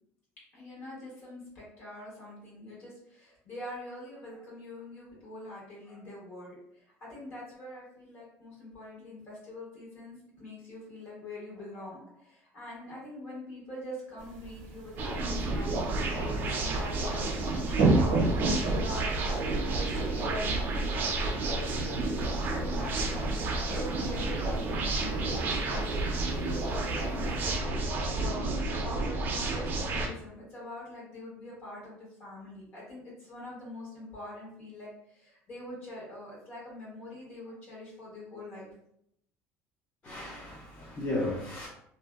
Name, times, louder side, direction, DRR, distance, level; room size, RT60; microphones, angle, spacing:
voice 1, 0.5-19.5 19.8-38.7, left 1 dB, 45° left, -6 dB, 1.5 m, -44 dB
sound 1, 14.2-27.6, right 2 dB, 85° right, 0.6 m, -34 dB
sound 2, 15.0-30.1, right 2 dB, 40° right, 0.4 m, -31 dB
voice 2, 40.0-41.7, left 1 dB, 25° left, -6 dB, 0.5 m, -34 dB
2.6 x 2.2 x 2.2 m, 0.73 s
cardioid pair, 155°, 5 cm